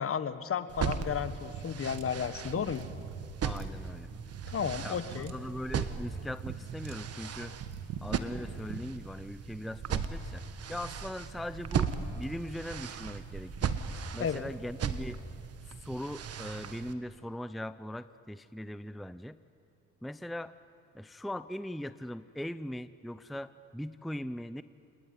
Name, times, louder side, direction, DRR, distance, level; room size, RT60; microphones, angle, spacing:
voice 1, 0.0-2.9 4.5-5.3 14.2-14.5, left 7 dB, 50° left, 13 dB, 1.4 m, -33 dB
sound 1, 0.7-16.9, right 7 dB, 55° right, 1.5 m, -37 dB
sound 2, 1.5-8.9, right 6 dB, 90° right, 1.9 m, -43 dB
voice 2, 3.4-4.1 4.8-7.6 8.0-10.4 10.7-13.7 14.1-15.2 15.7-19.4 20.0-20.5 20.9-24.6, left 1 dB, ahead, 13 dB, 0.6 m, -40 dB
29.0 x 20.0 x 9.6 m, 2.6 s
cardioid pair, 90°, 30 cm